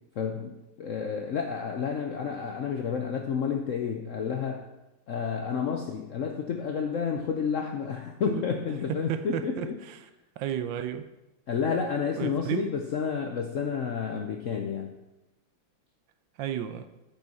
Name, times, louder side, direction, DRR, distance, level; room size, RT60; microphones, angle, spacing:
voice 1, 0.1-4.7 5.1-9.8 11.5-14.9, left 6 dB, 70° left, 0.7 m, -30 dB
voice 2, 8.9-9.7 10.4-11.1 12.1-12.7 16.4-16.9, right 10 dB, 75° right, 1.3 m, -32 dB
13.5 x 5.6 x 4.1 m
omnidirectional pair, 2.2 m